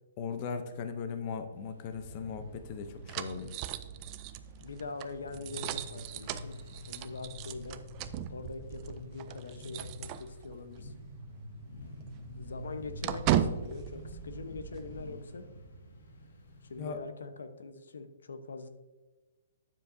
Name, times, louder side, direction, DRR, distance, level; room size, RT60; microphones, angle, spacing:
voice 1, 0.2-3.6 16.8-17.0, left 6 dB, 35° left, 8 dB, 0.6 m, -38 dB
sound 1, 1.5-17.0, equal, 70° left, 1.7 m, -48 dB
sound 2, 1.9-10.8 11.1-11.2 11.6-15.0, right 11 dB, 25° right, 0.4 m, -37 dB
voice 2, 4.6-6.6 6.9-7.8 8.3-10.9 12.3-15.4 16.6-18.7, left 4 dB, 85° left, 9 dB, 0.8 m, -43 dB
9.6 x 7.3 x 2.6 m, 1.2 s
hypercardioid pair, 160°, 0 cm